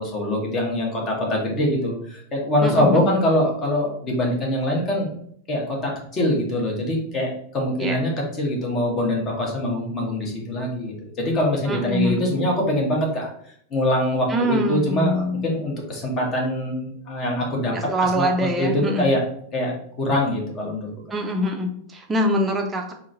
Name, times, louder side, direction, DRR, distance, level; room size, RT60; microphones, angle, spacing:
voice 1, 0.0-5.1 5.5-8.1 8.4-13.3 13.7-17.7 18.0-18.3 18.6-19.2 19.5-20.9, left 1 dB, 30° left, -1 dB, 1.2 m, -23 dB
voice 2, 2.6-3.1 7.8-8.0 11.7-12.2 14.3-15.4 17.7-19.1 21.1-22.9, equal, 15° right, 2 dB, 0.7 m, -24 dB
3.7 x 2.2 x 3.9 m, 0.66 s
figure-of-eight pair, 90°, 0 cm